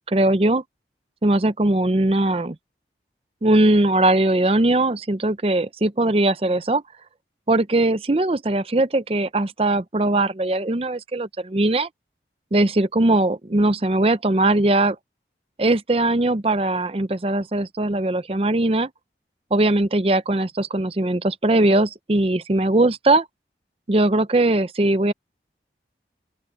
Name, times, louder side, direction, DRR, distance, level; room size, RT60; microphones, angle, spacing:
voice 1, 0.1-0.6 1.2-2.6 3.4-6.8 7.5-11.9 12.5-15.0 15.6-18.9 19.5-23.2 23.9-25.1, right 2 dB, 35° right, 0.6 m, -20 dB
open air
head